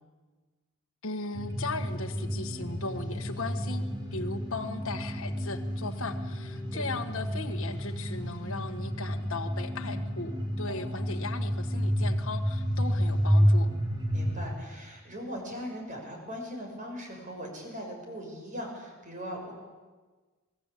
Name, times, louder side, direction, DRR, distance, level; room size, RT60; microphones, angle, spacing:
voice 1, 1.0-3.8 4.1-13.7, left 3 dB, 60° left, 4 dB, 1.5 m, -37 dB
sound 1, 1.3-14.5, equal, 20° right, 3.4 m, -30 dB
voice 2, 14.1-19.5, equal, 35° right, 1 dB, 6.5 m, -39 dB
27.0 x 19.5 x 8.4 m, 1.3 s
head